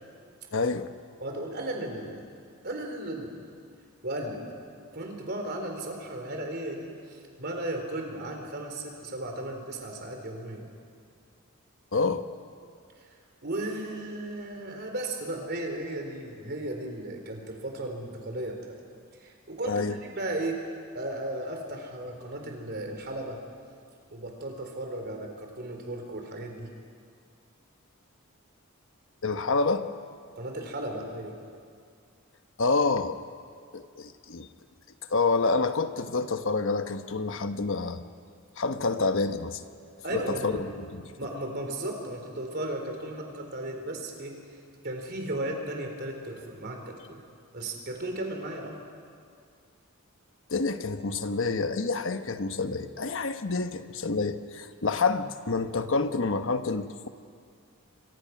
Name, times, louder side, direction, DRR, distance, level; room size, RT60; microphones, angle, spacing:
voice 1, 0.5-0.9 11.9-12.3 19.7-19.9 29.2-29.9 32.6-33.2 33.7-34.5 35.1-38.0 38.6-39.6 40.1-40.7 50.5-57.1, left 3 dB, 60° left, 9 dB, 1.1 m, -28 dB
voice 2, 1.2-2.2 2.6-3.5 4.0-4.5 4.9-10.6 13.0-13.1 13.4-18.6 19.2-19.8 20.2-20.6 20.9-23.4 24.1-26.7 30.4-31.4 40.0-40.6 41.2-44.4 44.8-47.2 47.5-48.8, right 1 dB, 50° right, 3 dB, 3.8 m, -35 dB
29.0 x 24.5 x 6.0 m, 2.2 s
head